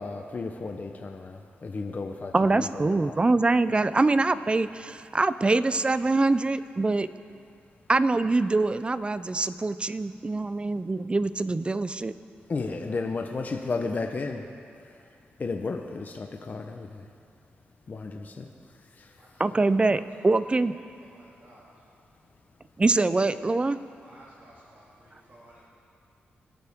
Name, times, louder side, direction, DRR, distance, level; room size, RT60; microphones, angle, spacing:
voice 1, 0.0-3.2 12.5-14.4 14.8-15.0 15.4-17.1 17.9-18.5 18.9-19.1, left 3 dB, 45° left, 3 dB, 1.0 m, -33 dB
voice 2, 2.3-7.1 7.9-12.1 19.4-20.7 22.8-23.8, right 3 dB, 25° right, 13 dB, 0.6 m, -24 dB
voice 3, 21.0-21.7 24.0-25.7, right 1 dB, 45° right, -7 dB, 2.8 m, -55 dB
25.0 x 8.9 x 3.7 m, 2.5 s
cardioid pair, 70°, 4 cm